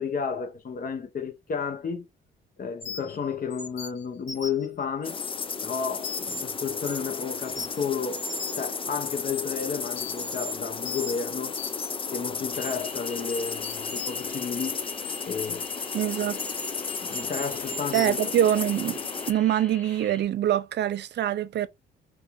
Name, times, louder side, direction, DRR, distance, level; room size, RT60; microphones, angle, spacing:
voice 1, 0.0-2.1 2.6-5.2 5.6-8.2 8.5-11.6 12.1-14.8 15.3-15.7 17.0-18.3, left 6 dB, 45° left, 1.1 m, -32 dB
sound 1, 2.8-3.2 3.5-4.7 5.0-6.4 6.8-7.1 7.4-8.7 9.0-9.4 10.0-12.0 12.5-12.7 13.3-15.5 16.2-18.1, left 3 dB, 75° left, 2.0 m, -38 dB
sound 2, 5.0-19.3, left 5 dB, 25° left, 0.6 m, -34 dB
sound 3, 12.5-20.2, left 3 dB, 5° left, 1.3 m, -44 dB
voice 2, 15.9-16.4 17.9-19.0 19.3-21.7, right 11 dB, 60° right, 0.6 m, -24 dB
5.2 x 2.5 x 3.6 m
cardioid pair, 90°, 20 cm